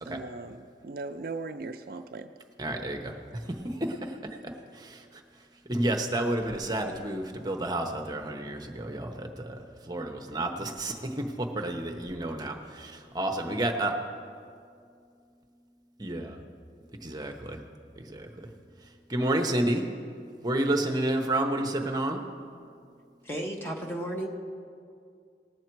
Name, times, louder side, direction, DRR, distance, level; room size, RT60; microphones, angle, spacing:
voice 1, 0.1-2.3, right 3 dB, 55° right, 8 dB, 0.4 m, -38 dB
voice 2, 2.6-3.1 3.5-4.2 4.4-5.2 5.7-14.0 16.0-16.4 17.0-17.6 18.0-18.5 19.1-19.9 20.4-22.2, right 1 dB, 20° right, 4 dB, 0.8 m, -30 dB
voice 3, 23.2-24.3, right 1 dB, 10° left, 0 dB, 1.0 m, -33 dB
18.5 x 7.3 x 4.5 m, 2.3 s
head